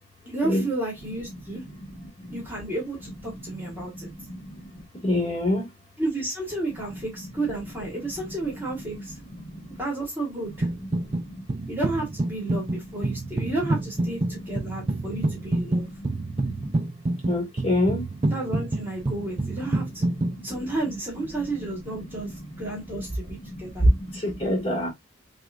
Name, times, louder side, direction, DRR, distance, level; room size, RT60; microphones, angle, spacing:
voice 1, 0.2-1.6 2.3-4.1 6.0-9.2 9.8-10.7 11.7-15.9 18.3-23.8, right 2 dB, 10° right, 1.5 m, -32 dB
voice 2, 5.0-5.6 17.3-18.0 24.2-24.9, left 1 dB, 30° left, 2.0 m, -24 dB
sound 1, 10.6-11.2 11.5-20.3, right 2 dB, 30° right, 0.4 m, -27 dB
6.0 x 2.5 x 2.5 m
head